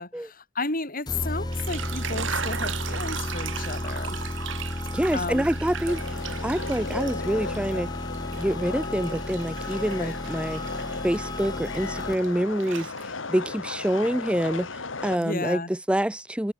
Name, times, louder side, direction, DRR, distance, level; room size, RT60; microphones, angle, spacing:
voice 1, 0.0-4.2 5.1-5.4 10.0-10.1 15.2-15.7, left 3 dB, 45° left, 4.9 m, -33 dB
sound 1, 1.1-12.4, left 1 dB, 20° left, 1.3 m, -33 dB
sound 2, 1.4-7.8 8.1-12.3 12.6-13.4, right 7 dB, 65° right, 2.3 m, -37 dB
voice 2, 4.9-7.9 8.4-10.6 11.0-12.9 13.3-16.5, equal, 5° right, 0.6 m, -26 dB
sound 3, 5.9-15.2, left 3 dB, 65° left, 2.0 m, -36 dB
head